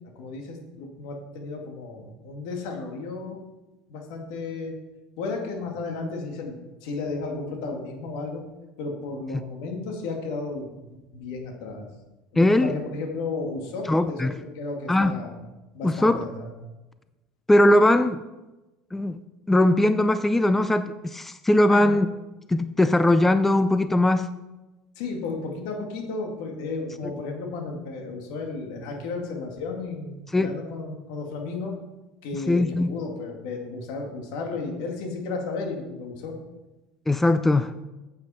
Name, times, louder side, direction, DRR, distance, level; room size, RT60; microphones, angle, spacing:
voice 1, 0.2-3.4 3.9-4.7 5.2-8.4 8.8-10.7 11.1-11.9 12.3-15.3 15.7-16.5 21.7-21.9 25.0-31.8 32.2-36.4, left 3 dB, 75° left, 2 dB, 2.1 m, -33 dB
voice 2, 12.4-12.7 13.9-14.4 14.9-15.1 15.8-16.3 17.5-18.2 18.9-19.2 19.5-22.1 22.5-24.3 30.3-30.5 32.5-32.9 37.1-37.7, left 1 dB, 10° left, 12 dB, 0.4 m, -20 dB
9.0 x 8.0 x 4.3 m, 1.1 s
supercardioid pair, 110°, 3 cm